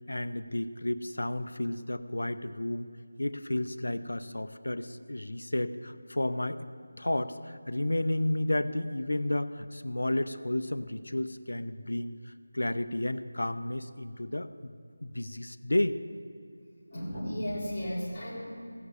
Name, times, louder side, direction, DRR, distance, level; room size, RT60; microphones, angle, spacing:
voice 1, 0.1-2.9 3.2-6.6 7.0-12.1 12.5-14.7 15.0-16.0, left 1 dB, 90° left, 11 dB, 0.7 m, -32 dB
voice 2, 16.9-18.4, equal, 15° left, -11 dB, 3.6 m, -34 dB
16.5 x 6.7 x 6.9 m, 2.3 s
figure-of-eight pair, 175°, 0 cm